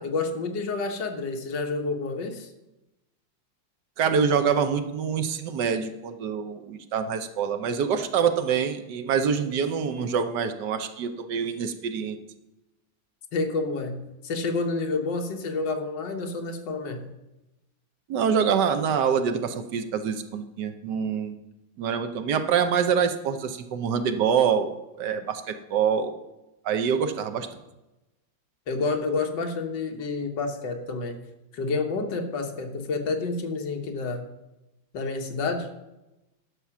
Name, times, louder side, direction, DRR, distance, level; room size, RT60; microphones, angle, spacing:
voice 1, 0.0-2.5 13.3-17.1 28.7-31.2 31.5-34.2 34.9-35.7, left 3 dB, 70° left, 4 dB, 1.8 m, -29 dB
voice 2, 4.0-12.2 18.1-21.3 21.8-26.1 26.6-27.6, right 7 dB, 65° right, 8 dB, 1.3 m, -25 dB
11.5 x 6.1 x 6.0 m, 0.97 s
omnidirectional pair, 2.1 m